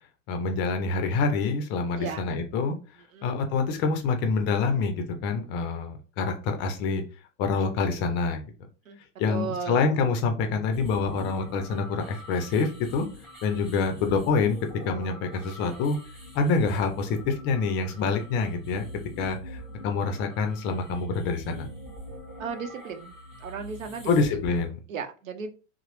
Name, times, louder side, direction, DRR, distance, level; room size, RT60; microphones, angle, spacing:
voice 1, 0.3-2.8 3.2-7.0 7.4-8.4 9.2-13.1 13.4-14.6 14.8-16.0 16.3-18.8 19.2-19.6 19.8-21.7 24.1-24.8, left 4 dB, 30° left, 6 dB, 0.4 m, -26 dB
voice 2, 9.3-9.8 22.4-23.1 23.4-24.4 24.9-25.5, right 6 dB, 90° right, 7 dB, 0.7 m, -35 dB
sound 1, 10.7-24.7, equal, ahead, 1.3 m, -44 dB
2.9 x 2.0 x 2.9 m, 0.34 s
hypercardioid pair, 120°, 39 cm